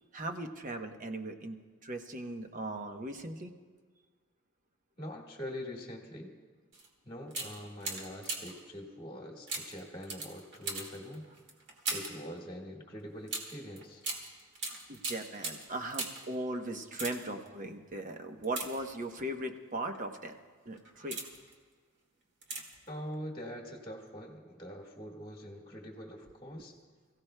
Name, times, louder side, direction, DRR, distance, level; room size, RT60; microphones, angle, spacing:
voice 1, 0.1-1.6 1.8-3.5 14.9-20.3 20.7-21.2 26.5-26.7, right 1 dB, 35° right, 5 dB, 0.9 m, -38 dB
voice 2, 5.0-6.3 7.0-11.3 11.9-14.1 22.9-26.7, equal, 20° left, 0 dB, 1.6 m, -44 dB
sound 1, 6.7-6.9 7.3-8.7 9.5-12.3 13.3-16.3 16.8-17.5 18.4-19.3 19.9-20.2 20.7-21.5 22.4-22.9 23.1-23.2, right 3 dB, 55° right, 2.1 m, -40 dB
28.5 x 16.0 x 2.2 m, 1.5 s
head